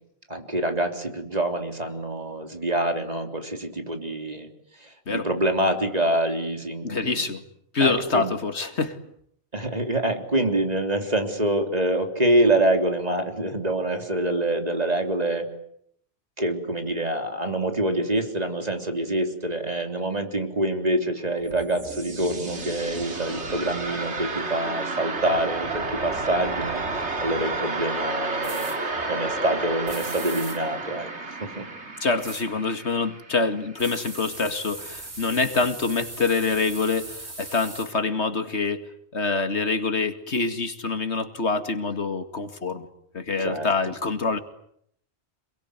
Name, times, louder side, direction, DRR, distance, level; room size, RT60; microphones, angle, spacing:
voice 1, 0.3-4.5 4.8-7.3 7.8-8.3 9.5-15.5 16.4-28.7 29.1-31.7 43.4-43.9, right 1 dB, 35° right, 5 dB, 3.7 m, -26 dB
voice 2, 6.8-7.4 7.7-9.0 32.0-42.9 43.1-44.4, left 4 dB, 85° left, 9 dB, 2.4 m, -26 dB
sound 1, 21.3-34.1, right 3 dB, 90° right, 2.8 m, -31 dB
sound 2, 28.4-28.8 29.9-30.6 32.2-32.4 33.8-37.9, right 2 dB, 70° right, 4.0 m, -39 dB
27.5 x 22.0 x 9.6 m, 0.70 s
omnidirectional pair, 1.1 m